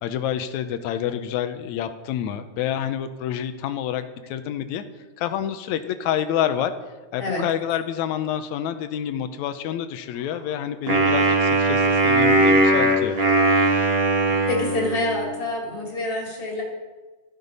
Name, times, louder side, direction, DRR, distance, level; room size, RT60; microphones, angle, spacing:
voice 1, 0.0-4.8 5.2-6.7 7.1-13.2, left 10 dB, 75° left, 10 dB, 2.1 m, -28 dB
Wind instrument woodwind instrument, 10.9-15.3, right 2 dB, 30° right, 1.1 m, -19 dB
voice 2, 14.1-16.6, left 2 dB, 50° left, -1 dB, 3.9 m, -27 dB
13.0 x 12.0 x 5.4 m, 1.3 s
omnidirectional pair, 3.5 m